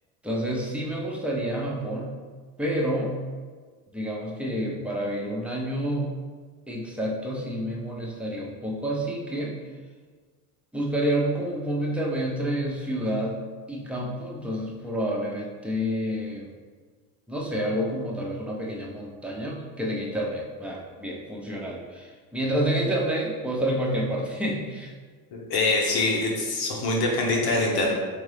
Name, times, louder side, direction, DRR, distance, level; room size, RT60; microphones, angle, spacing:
voice 1, 0.2-2.2 2.6-3.1 3.9-6.1 6.7-9.6 10.7-13.4 13.7-16.5 17.3-24.9, equal, 5° right, -3 dB, 0.8 m, -29 dB
voice 2, 25.3-27.9, left 2 dB, 55° left, -1 dB, 1.2 m, -24 dB
3.8 x 3.5 x 3.3 m, 1.5 s
supercardioid pair, 85°, 43 cm